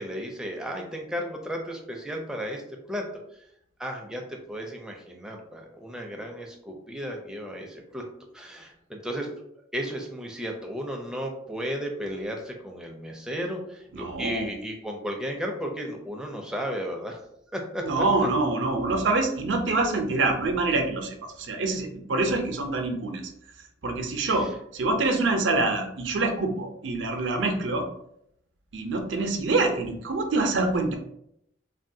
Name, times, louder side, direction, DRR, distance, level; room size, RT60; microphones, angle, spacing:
voice 1, 0.0-2.6 2.9-3.1 3.8-8.0 8.3-9.3 9.7-17.2 17.5-18.0 24.3-24.5, equal, 5° right, 1 dB, 0.4 m, -34 dB
voice 2, 13.9-14.5 17.8-23.3 23.8-27.9 28.7-30.9, right 3 dB, 90° right, 5 dB, 0.5 m, -26 dB
3.5 x 2.2 x 2.6 m, 0.75 s
head